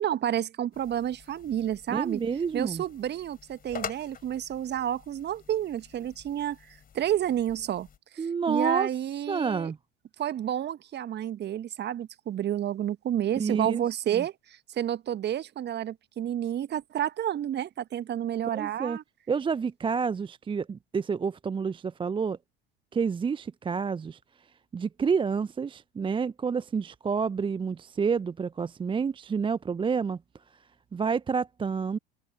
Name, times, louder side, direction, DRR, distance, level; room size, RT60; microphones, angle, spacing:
voice 1, 0.0-2.2 2.5-7.9 8.1-9.7 10.2-19.0, right 11 dB, 35° right, 1.6 m, -30 dB
sound 1, 0.7-8.0, left 7 dB, 30° left, 4.5 m, -46 dB
voice 2, 1.9-2.8 8.2-8.9 9.3-9.8 13.4-14.2 18.5-19.0 19.3-22.4 22.9-24.2 24.7-30.2 30.9-32.0, right 5 dB, 15° right, 0.7 m, -29 dB
figure-of-eight pair, 70°, 30 cm